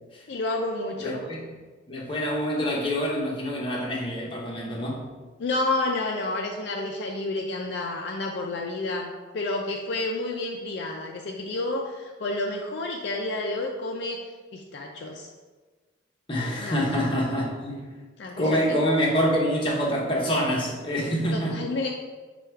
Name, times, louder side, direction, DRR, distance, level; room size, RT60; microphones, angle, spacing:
voice 1, 0.3-1.2 5.4-15.3 16.6-16.9 18.2-18.8 21.3-21.9, left 2 dB, 60° left, 1 dB, 0.4 m, -30 dB
voice 2, 1.0-1.4 1.9-5.1 16.3-17.9 18.4-21.6, equal, 25° left, -3 dB, 0.8 m, -26 dB
4.7 x 2.3 x 4.4 m, 1.3 s
head